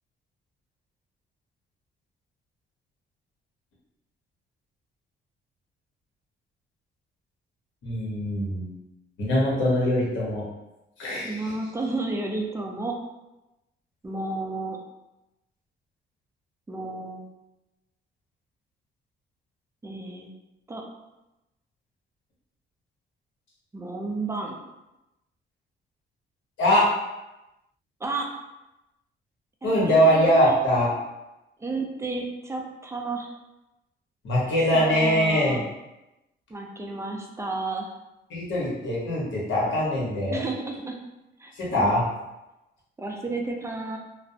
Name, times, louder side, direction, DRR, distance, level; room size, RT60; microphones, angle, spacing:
voice 1, 7.8-8.7 9.2-10.4 11.0-11.5 26.6-26.9 29.6-30.9 34.2-35.6 38.3-40.4 41.6-42.0, equal, 70° left, -5 dB, 1.0 m, -22 dB
voice 2, 11.2-12.9 14.0-14.8 16.7-17.2 19.8-20.3 20.7-20.8 23.7-24.6 28.0-28.3 29.6-30.6 31.6-33.3 34.4-35.7 36.5-37.9 40.3-41.0 41.4-41.9 43.0-44.0, right 3 dB, 15° right, 1 dB, 0.4 m, -32 dB
2.5 x 2.0 x 2.6 m, 0.96 s
cardioid pair, 90°, 20 cm